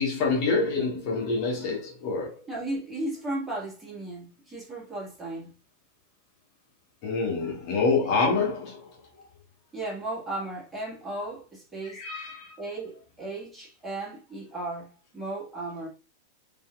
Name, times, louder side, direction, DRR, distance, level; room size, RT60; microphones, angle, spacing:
voice 1, 0.0-2.4 7.0-9.3 11.8-12.6, left 4 dB, 40° left, 1.4 m, -27 dB
voice 2, 2.5-5.5 9.7-12.0 12.6-15.9, right 2 dB, 10° right, 1.7 m, -35 dB
4.3 x 3.4 x 2.4 m
figure-of-eight pair, 90°, 0 cm